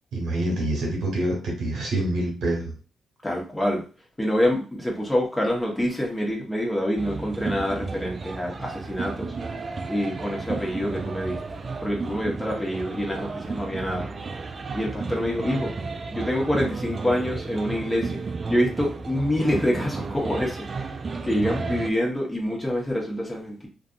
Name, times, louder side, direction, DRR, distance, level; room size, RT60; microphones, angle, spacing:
voice 1, 0.1-2.7 21.6-21.8, right 1 dB, 75° right, -1 dB, 1.2 m, -26 dB
voice 2, 3.2-3.8 4.2-9.3 9.9-11.4 11.8-14.1 14.7-15.7 16.1-18.2 18.5-21.0 21.2-23.7, equal, 15° left, -1 dB, 1.1 m, -26 dB
sound 1, 7.0-21.9, right 4 dB, 45° right, 0.3 m, -33 dB
2.6 x 2.5 x 2.4 m, 0.36 s
supercardioid pair, 50°, 0 cm